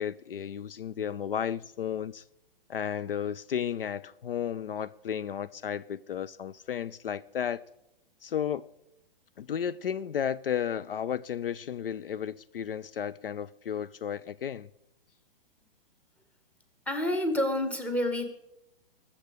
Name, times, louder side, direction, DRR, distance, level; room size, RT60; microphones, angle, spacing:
voice 1, 0.0-2.2 2.7-7.6 8.2-8.6 9.4-14.7, left 9 dB, 70° left, 0.5 m, -33 dB
voice 2, 16.9-18.3, left 1 dB, 5° left, 1.2 m, -28 dB
20.5 x 7.2 x 4.9 m
figure-of-eight pair, 115°, 29 cm